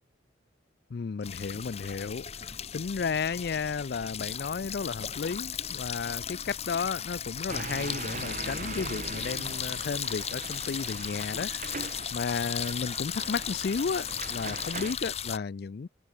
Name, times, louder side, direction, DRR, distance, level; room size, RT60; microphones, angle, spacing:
voice 1, 0.9-15.9, left 5 dB, 55° left, 0.4 m, -33 dB
sound 1, 1.2-15.4, left 8 dB, 30° left, 1.0 m, -36 dB
sound 2, 7.5-15.0, right 4 dB, 40° right, 1.8 m, -40 dB
open air
head